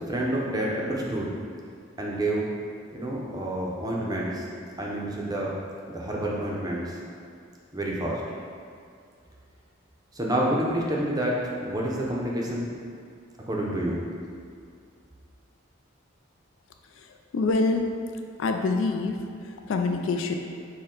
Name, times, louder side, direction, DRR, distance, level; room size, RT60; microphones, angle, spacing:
voice 1, 0.0-1.3 2.0-2.5 2.9-4.5 4.8-5.5 5.9-7.0 7.7-8.2 10.1-12.7 13.5-14.0, right 1 dB, 20° right, -3 dB, 0.6 m, -28 dB
voice 2, 17.0-17.9 18.4-20.3, left 3 dB, 65° left, 4 dB, 0.3 m, -26 dB
6.5 x 2.2 x 3.7 m, 2.3 s
head